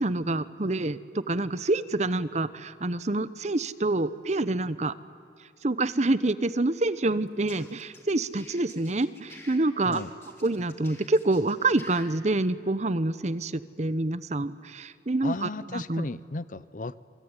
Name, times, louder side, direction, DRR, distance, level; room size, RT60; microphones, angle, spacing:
voice 1, 0.0-4.9 5.6-10.1 10.4-16.1, right 2 dB, 40° right, 15 dB, 0.8 m, -27 dB
sound 1, 7.3-9.6 9.9-12.0, left 2 dB, 15° left, 4.1 m, -50 dB
voice 2, 15.2-17.0, left 3 dB, 50° left, 17 dB, 0.7 m, -35 dB
28.0 x 21.5 x 9.8 m, 2.4 s
head